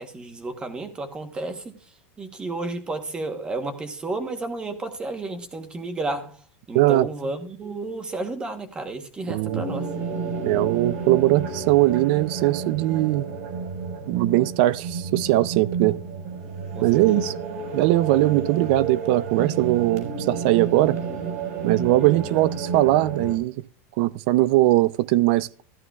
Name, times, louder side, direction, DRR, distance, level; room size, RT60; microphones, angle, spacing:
voice 1, 0.0-9.9 16.7-17.3 21.9-22.4, right 2 dB, 10° right, 1.0 m, -32 dB
voice 2, 6.7-7.1 9.3-9.6 10.4-13.3 14.1-16.0 16.8-17.3 17.7-21.0 21.6-23.5 24.0-25.5, right 17 dB, 45° right, 0.4 m, -20 dB
sound 1, 9.4-23.4, right 5 dB, 80° right, 4.7 m, -31 dB
13.5 x 12.5 x 2.3 m
supercardioid pair, 175°, 8 cm